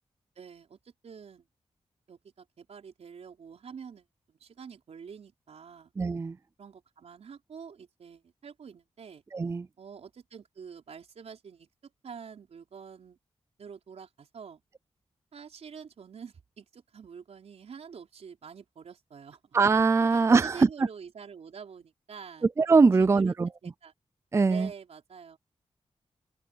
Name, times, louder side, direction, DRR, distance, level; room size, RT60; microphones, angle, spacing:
voice 1, 0.3-0.8 1.0-1.5 2.1-5.9 6.6-9.2 9.8-11.7 12.0-13.2 13.6-14.6 15.3-19.6 20.1-22.5 23.0-23.3 23.6-23.9 24.5-25.4, right 6 dB, 80° right, 4.7 m, -47 dB
voice 2, 6.0-6.4 9.3-9.7 19.5-20.9 22.6-23.5 24.3-24.7, right 4 dB, 25° right, 0.4 m, -22 dB
wide cardioid pair, 140°, 11 cm